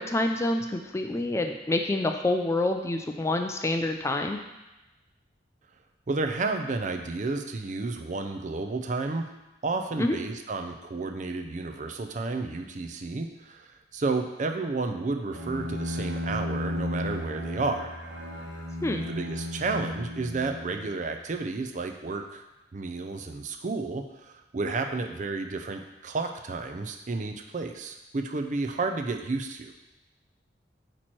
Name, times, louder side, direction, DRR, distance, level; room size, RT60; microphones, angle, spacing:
voice 1, 0.0-4.4 10.0-10.2 18.8-19.1, left 2 dB, 15° left, 4 dB, 0.4 m, -27 dB
voice 2, 6.1-9.3 9.6-18.0 19.0-22.4 22.7-29.7, right 3 dB, 45° right, 5 dB, 0.5 m, -31 dB
Bowed string instrument, 15.3-21.1, left 1 dB, 80° right, 1.1 m, -34 dB
8.5 x 3.1 x 4.5 m, 0.98 s
head